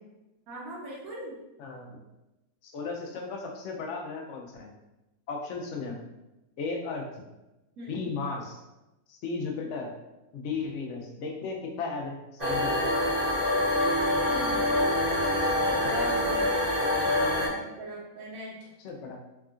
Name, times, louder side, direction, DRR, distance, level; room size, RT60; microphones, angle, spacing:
voice 1, 0.5-1.4 7.8-8.1 14.3-14.6 15.5-16.6 17.5-18.7, equal, 75° right, -5 dB, 1.1 m, -39 dB
voice 2, 1.6-1.9 2.6-4.7 5.3-6.0 6.6-7.2 7.9-8.6 9.1-9.9 10.3-12.8 18.8-19.2, left 4 dB, 65° left, 1 dB, 0.8 m, -35 dB
sound 1, 12.4-17.5, left 1 dB, 45° right, 0.9 m, -25 dB
3.5 x 2.2 x 2.4 m, 0.98 s
omnidirectional pair, 1.6 m